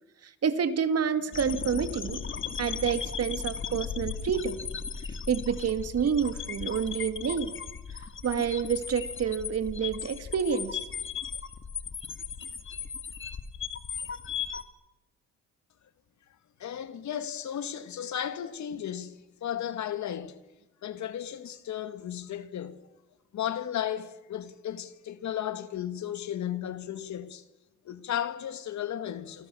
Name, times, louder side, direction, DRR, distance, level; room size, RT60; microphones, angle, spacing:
voice 1, 0.2-2.2 2.6-4.6 5.3-7.5 8.2-10.8, right 7 dB, 55° right, 2.4 m, -28 dB
sound 1, 1.3-14.6, left 6 dB, 40° left, 2.3 m, -37 dB
voice 2, 16.6-20.4 20.8-22.8 23.3-27.4 27.8-29.5, left 10 dB, 70° left, 2.2 m, -34 dB
29.5 x 25.5 x 7.1 m
cardioid pair, 90°, 30 cm